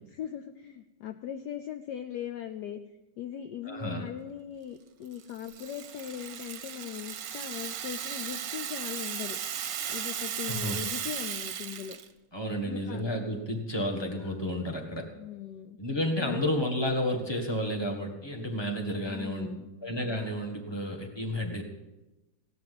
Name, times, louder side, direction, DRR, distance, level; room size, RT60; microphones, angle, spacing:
voice 1, 0.1-2.8 3.2-9.4 9.9-12.0 12.6-13.0 15.0-15.8 16.2-16.6 19.0-19.7, left 10 dB, 70° left, 8 dB, 1.1 m, -39 dB
voice 2, 3.6-4.1 10.5-10.8 12.3-15.1 15.8-19.5 19.8-21.6, left 1 dB, 15° left, 3 dB, 1.7 m, -31 dB
Rattle (instrument), 5.1-12.1, right 8 dB, 60° right, 1.1 m, -36 dB
17.0 x 6.1 x 9.5 m, 1.1 s
omnidirectional pair, 2.1 m